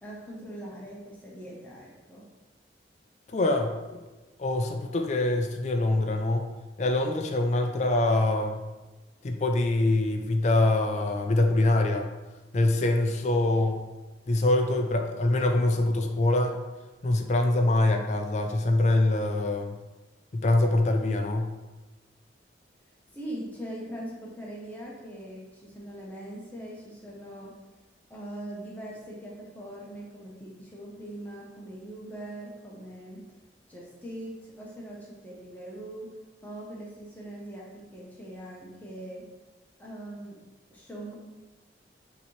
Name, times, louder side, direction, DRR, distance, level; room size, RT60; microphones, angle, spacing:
voice 1, 0.0-2.3 23.1-27.6 28.1-33.2 33.7-36.1 36.4-39.3 39.8-40.4 40.7-41.1, right 1 dB, 10° left, -4 dB, 0.8 m, -41 dB
voice 2, 3.3-3.8 4.4-6.5 6.8-8.7 9.2-12.1 12.5-13.8 14.3-16.6 17.0-19.8 20.3-21.5, left 2 dB, 40° left, 4 dB, 0.4 m, -24 dB
5.7 x 2.9 x 3.1 m, 1.2 s
head